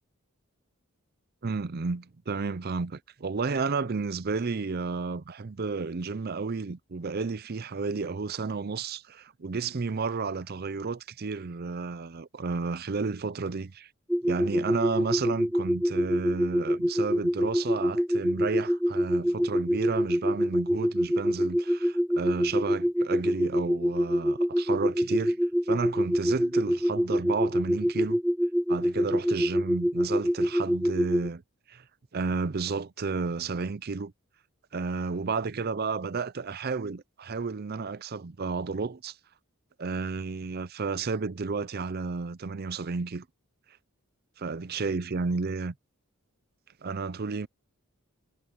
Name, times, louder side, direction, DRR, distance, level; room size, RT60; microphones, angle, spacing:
voice 1, 1.4-13.9 14.2-25.4 25.7-28.2 28.7-31.4 31.7-31.8 32.1-34.1 34.7-39.1 39.8-43.2 44.4-45.7 46.8-47.5, right 4 dB, 45° right, 0.6 m, -32 dB
sound 1, 14.1-31.3, equal, ahead, 1.5 m, -26 dB
head